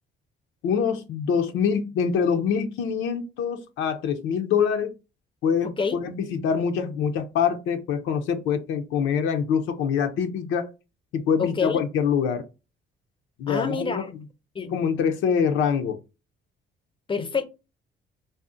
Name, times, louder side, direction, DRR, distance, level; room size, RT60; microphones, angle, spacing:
voice 1, 0.6-4.9 5.4-10.7 11.1-12.4 13.4-14.1 14.7-16.0, left 7 dB, 90° left, 0.5 m, -25 dB
voice 2, 11.4-11.8 13.5-14.0 14.5-14.8 17.1-17.4, left 5 dB, 25° left, 0.5 m, -27 dB
2.5 x 2.0 x 3.7 m
cardioid pair, 90°, 20 cm